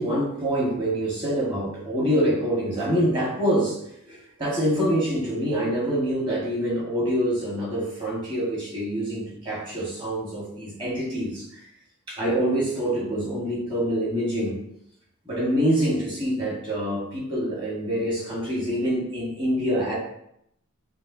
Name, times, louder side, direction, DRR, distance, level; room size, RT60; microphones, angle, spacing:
voice 1, 0.0-11.6 12.1-14.6 15.2-19.9, equal, 20° right, -5 dB, 1.5 m, -26 dB
6.7 x 2.5 x 2.7 m, 0.75 s
head